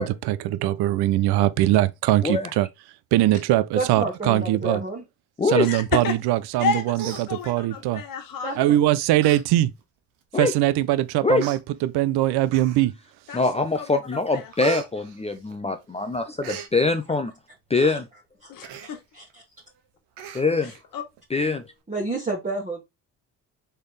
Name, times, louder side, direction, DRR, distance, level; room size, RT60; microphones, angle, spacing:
voice 1, 0.0-2.7 3.1-4.8 5.4-8.0 8.6-9.7 10.4-12.9, right 14 dB, 70° right, 0.6 m, -22 dB
voice 2, 3.7-5.0 8.4-8.8 17.8-18.0 18.4-18.5 18.8-19.4 21.9-22.8, right 2 dB, 20° right, 1.5 m, -30 dB
voice 3, 5.6-6.1 6.6-8.5 13.3-14.5 18.5-19.0 20.9-21.0, left 6 dB, 55° left, 1.5 m, -30 dB
Human voice, 6.5-6.7 7.0-7.9 8.6-8.8 9.2-9.4 9.8-9.9 10.7-10.8 11.4-11.6 12.5-13.0 13.5-13.9 14.2-15.9 16.1-16.7 18.6-18.9 19.3-19.4 19.7-19.8 20.2-20.8 21.2-21.3, right 8 dB, 85° right, 1.1 m, -37 dB
voice 4, 13.3-17.3 17.7-18.1 20.3-20.7 21.3-21.6, left 3 dB, 15° left, 0.6 m, -23 dB
4.4 x 3.4 x 3.3 m
supercardioid pair, 75°, 40 cm